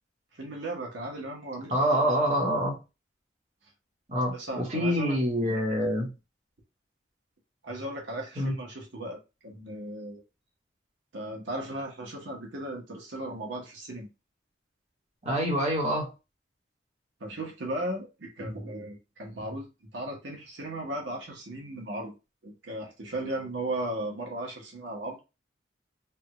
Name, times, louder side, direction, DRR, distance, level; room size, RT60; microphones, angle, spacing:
voice 1, 0.4-2.1 4.3-5.6 7.6-10.2 11.1-14.1 17.2-22.1 22.4-25.2, right 1 dB, 90° right, 1.1 m, -36 dB
voice 2, 1.7-2.8 4.1-6.1 8.4-8.5 15.2-16.1, equal, 35° right, 1.1 m, -26 dB
3.4 x 2.3 x 2.9 m
head